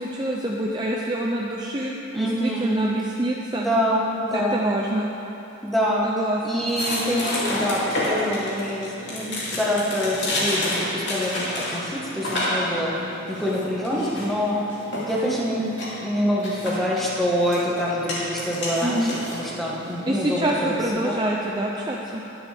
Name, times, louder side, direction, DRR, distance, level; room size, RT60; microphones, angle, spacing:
voice 1, 0.0-3.7 4.3-5.1 6.0-6.7 18.8-19.1 20.1-22.2, right 1 dB, 20° right, -2 dB, 0.5 m, -26 dB
voice 2, 2.1-2.8 3.5-4.6 5.6-6.1 6.4-12.9 13.3-14.6 15.0-15.7 16.0-21.2, equal, ahead, -6 dB, 1.5 m, -26 dB
sound 1, 6.7-20.9, left 1 dB, 55° left, 3.0 m, -30 dB
21.0 x 7.1 x 3.5 m, 3.0 s
head